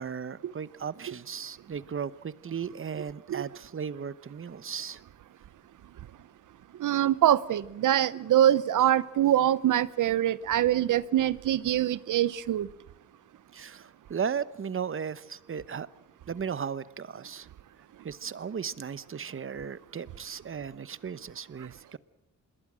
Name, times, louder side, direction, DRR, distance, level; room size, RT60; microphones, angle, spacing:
voice 1, 0.0-5.0 13.5-15.9 16.3-17.5 18.0-22.0, right 7 dB, 45° right, 1.0 m, -36 dB
voice 2, 6.8-12.7, right 11 dB, 90° right, 0.9 m, -24 dB
26.5 x 21.5 x 6.3 m
cardioid pair, 100°, 30 cm